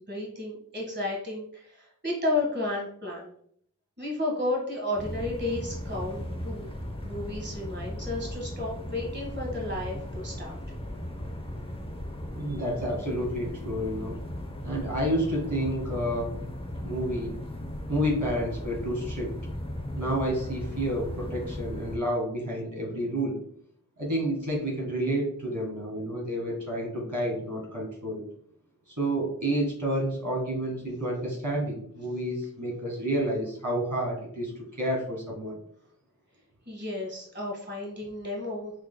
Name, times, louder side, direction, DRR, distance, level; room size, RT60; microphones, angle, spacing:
voice 1, 0.1-3.3 4.0-6.7 7.0-10.6 12.5-12.6 36.7-38.7, left 2 dB, 30° right, -3 dB, 1.5 m, -32 dB
sound 1, 5.0-22.0, left 1 dB, 15° left, 0.8 m, -37 dB
voice 2, 12.4-14.2 14.6-16.3 16.8-17.3 17.9-19.3 19.9-23.4 24.0-28.2 28.9-34.5 34.8-35.6, right 1 dB, 60° right, -2 dB, 1.7 m, -30 dB
6.1 x 3.8 x 2.2 m, 0.64 s
wide cardioid pair, 45°, 34 cm